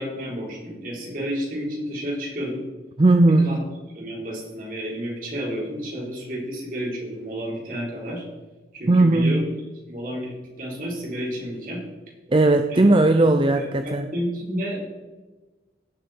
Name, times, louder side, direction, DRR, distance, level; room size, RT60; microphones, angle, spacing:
voice 1, 0.0-2.6 3.4-3.6 3.9-8.3 8.7-9.4 9.9-11.8 12.7-12.8 13.2-13.3 13.5-14.8, equal, 50° right, -3 dB, 4.3 m, -31 dB
voice 2, 3.0-3.6 8.9-9.4 12.3-14.1, right 2 dB, 30° right, 8 dB, 0.5 m, -17 dB
17.0 x 6.6 x 4.5 m, 1.2 s
head